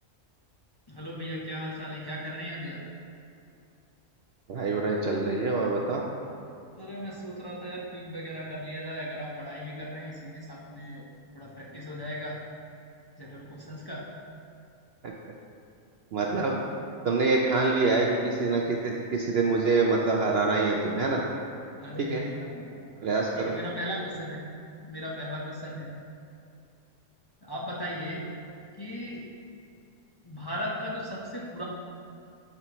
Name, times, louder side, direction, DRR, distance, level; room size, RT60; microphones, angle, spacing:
voice 1, 0.9-2.8 6.8-11.0 11.3-12.4 13.2-14.1 16.3-16.5 21.7-24.4 24.8-25.9 27.4-28.2 28.8-29.2 30.2-31.6, equal, 20° left, -5 dB, 0.7 m, -37 dB
voice 2, 4.5-6.0 16.1-16.5 17.0-21.2 22.0-22.2 23.0-23.5, right 3 dB, 60° right, -1 dB, 0.7 m, -25 dB
11.0 x 5.5 x 3.0 m, 2.4 s
omnidirectional pair, 1.5 m